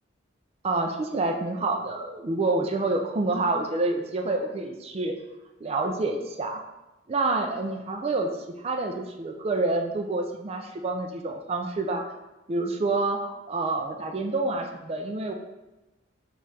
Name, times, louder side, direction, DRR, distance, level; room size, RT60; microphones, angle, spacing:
voice 1, 0.6-5.1 5.6-6.6 7.1-8.3 8.6-12.1 12.5-15.3, right 2 dB, 30° right, 3 dB, 0.3 m, -28 dB
4.2 x 2.4 x 3.9 m, 1.0 s
head